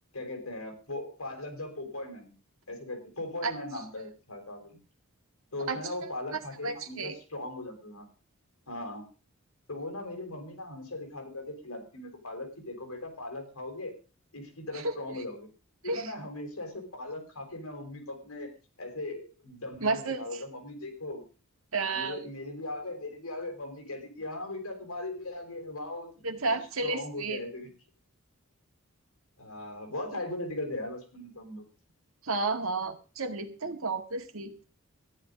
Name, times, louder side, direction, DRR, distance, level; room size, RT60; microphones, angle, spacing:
voice 1, 0.1-2.3 2.7-4.8 5.5-8.0 8.7-9.0 9.7-13.9 14.3-15.5 15.8-18.5 18.8-21.2 21.9-26.1 26.8-27.7 29.4-31.6, left 2 dB, 80° left, 4 dB, 4.9 m, -39 dB
voice 2, 6.6-7.1 14.7-15.2 15.8-16.1 19.8-20.4 21.7-22.2 26.2-27.4 32.2-34.5, right 3 dB, 70° right, 6 dB, 2.0 m, -32 dB
13.5 x 11.0 x 5.3 m, 0.35 s
head